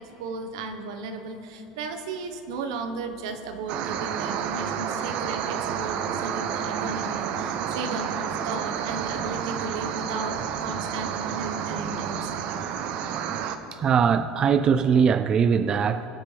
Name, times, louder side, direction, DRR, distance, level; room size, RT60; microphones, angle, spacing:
voice 1, 0.0-12.5, right 4 dB, 90° right, 7 dB, 1.2 m, -35 dB
sound 1, 3.7-13.6, right 8 dB, 55° right, 0.7 m, -30 dB
voice 2, 13.7-16.1, right 7 dB, 25° right, 11 dB, 0.3 m, -21 dB
22.0 x 8.4 x 3.4 m, 2.9 s
cardioid pair, 150°, 3 cm